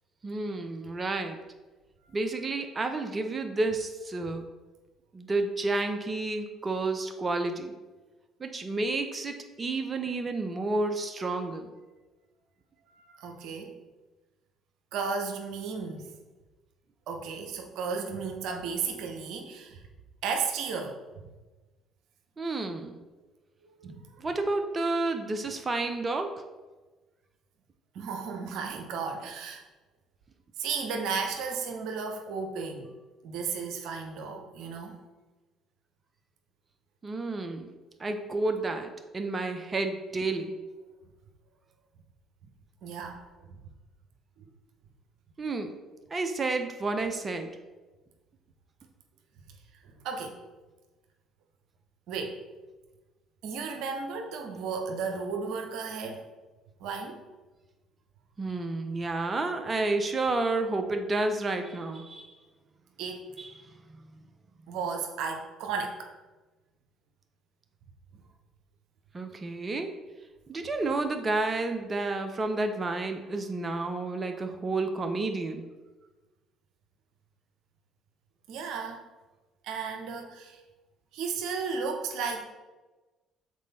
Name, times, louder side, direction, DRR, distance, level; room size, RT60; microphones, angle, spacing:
voice 1, 0.2-1.4 2.1-4.4 5.1-7.7 8.4-11.7 22.4-22.9 24.2-26.3 37.0-37.7 38.0-40.6 45.4-45.7 46.1-47.5 58.4-62.3 63.4-63.5 63.9-64.2 69.1-69.9 70.5-75.6, right 2 dB, 30° right, 6 dB, 0.7 m, -30 dB
voice 2, 13.1-13.8 14.9-16.2 17.1-19.8 20.2-21.0 23.8-24.2 27.9-29.6 30.6-32.9 33.2-35.0 42.8-43.2 43.5-43.6 44.4-44.5 49.8-50.4 52.1-52.4 53.4-56.2 56.8-57.2 63.0-63.2 64.7-66.1 78.5-79.0 79.6-80.6 81.1-82.5, right 5 dB, 70° right, 4 dB, 0.8 m, -34 dB
6.4 x 4.2 x 4.1 m, 1.2 s
hypercardioid pair, 55°, 0 cm